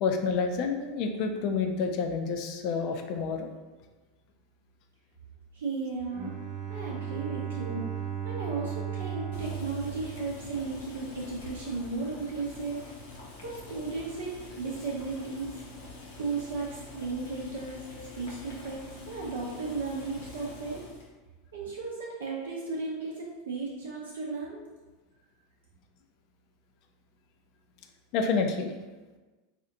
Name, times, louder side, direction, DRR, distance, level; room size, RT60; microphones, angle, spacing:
voice 1, 0.0-3.5 18.0-18.1 28.1-28.7, left 5 dB, 50° left, 5 dB, 0.4 m, -29 dB
voice 2, 5.5-6.3 6.7-7.9 8.2-12.8 13.4-15.5 16.2-17.8 18.1-20.8 21.5-24.6, right 4 dB, 70° right, -3 dB, 0.5 m, -35 dB
Bowed string instrument, 6.1-11.0, right 8 dB, 35° right, 1.0 m, -36 dB
Boiling, 9.3-21.1, left 2 dB, 70° left, 0.8 m, -46 dB
4.2 x 2.4 x 2.6 m, 1.2 s
figure-of-eight pair, 80°, 0 cm